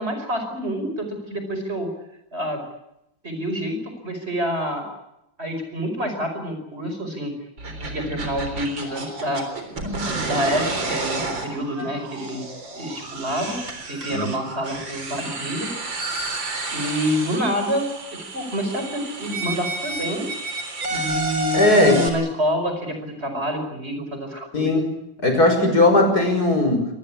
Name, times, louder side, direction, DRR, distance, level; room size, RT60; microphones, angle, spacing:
voice 1, 0.0-1.9 2.3-2.6 3.2-4.9 5.4-7.3 7.8-9.4 10.0-12.5 12.7-13.6 13.9-15.7 16.7-20.3 20.9-24.8, equal, 35° right, 6 dB, 5.4 m, -27 dB
sound 1, 7.6-22.1, right 2 dB, 80° right, 4.5 m, -30 dB
voice 2, 21.5-22.0 24.5-24.8 25.2-26.9, left 2 dB, 55° left, 5 dB, 6.2 m, -17 dB
25.0 x 20.0 x 8.6 m, 0.86 s
omnidirectional pair, 2.0 m